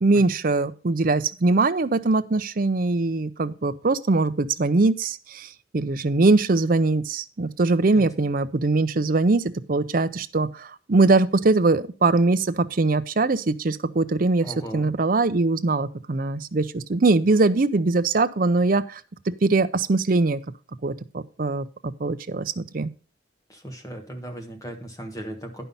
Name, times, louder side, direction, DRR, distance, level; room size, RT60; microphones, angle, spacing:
voice 1, 0.0-19.0 19.3-20.4 20.8-22.9, right 3 dB, 45° right, 12 dB, 0.6 m, -22 dB
voice 2, 14.4-14.9 23.5-25.6, right 1 dB, 20° left, 4 dB, 1.5 m, -37 dB
10.5 x 5.6 x 5.5 m, 0.37 s
head